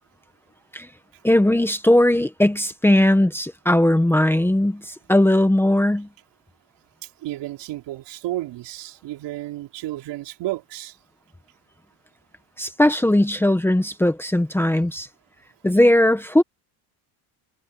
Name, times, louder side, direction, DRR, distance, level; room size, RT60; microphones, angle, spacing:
voice 1, 1.2-6.1 12.6-15.1 15.6-16.4, left 1 dB, 5° left, 1.4 m, -18 dB
voice 2, 7.0-11.0, right 15 dB, 65° right, 4.8 m, -32 dB
cardioid pair, 130°, 46 cm